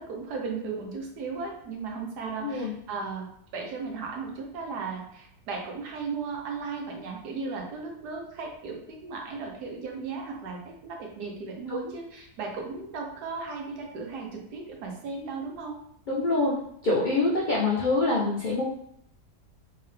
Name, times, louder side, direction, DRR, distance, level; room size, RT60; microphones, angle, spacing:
voice 1, 0.0-3.3 3.5-15.8, right 4 dB, 85° right, 1 dB, 1.4 m, -36 dB
voice 2, 2.4-2.7 11.7-11.8 16.1-16.5 16.8-18.6, left 2 dB, 70° left, -4 dB, 0.4 m, -25 dB
3.4 x 2.8 x 3.2 m, 0.70 s
omnidirectional pair, 1.7 m